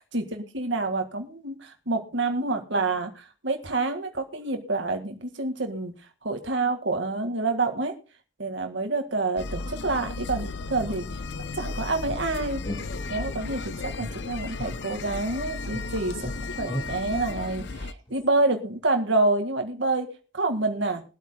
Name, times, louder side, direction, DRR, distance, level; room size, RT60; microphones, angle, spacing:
voice 1, 0.1-5.9 6.2-7.9 8.4-11.1 11.5-12.6 13.1-16.3 16.6-20.1 20.3-21.0, right 3 dB, 65° right, 5 dB, 1.9 m, -27 dB
sound 1, 9.4-17.9, left 3 dB, 60° left, 0.6 m, -35 dB
sound 2, 12.1-13.5 14.0-15.4 15.7-18.3, equal, 25° left, 2.5 m, -39 dB
23.0 x 8.4 x 2.2 m, 0.36 s
head